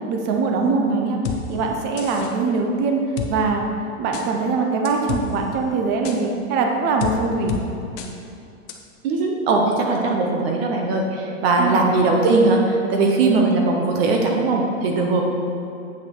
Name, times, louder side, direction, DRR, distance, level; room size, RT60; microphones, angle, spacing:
voice 1, 0.1-1.2 1.5-3.0 3.3-3.6 4.0-7.6 11.6-11.9, right 4 dB, 25° right, 2 dB, 0.7 m, -22 dB
sound 1, 1.2-1.4 2.0-2.3 3.2-3.3 4.1-4.3 4.8-5.2 6.0-6.2 7.0-7.1 7.5-7.6 8.0-8.1 8.7-8.8, left 9 dB, 25° left, 0.5 m, -29 dB
voice 2, 9.0-15.2, right 3 dB, 45° right, 1 dB, 1.0 m, -19 dB
8.0 x 5.8 x 4.6 m, 2.6 s
hypercardioid pair, 140°, 41 cm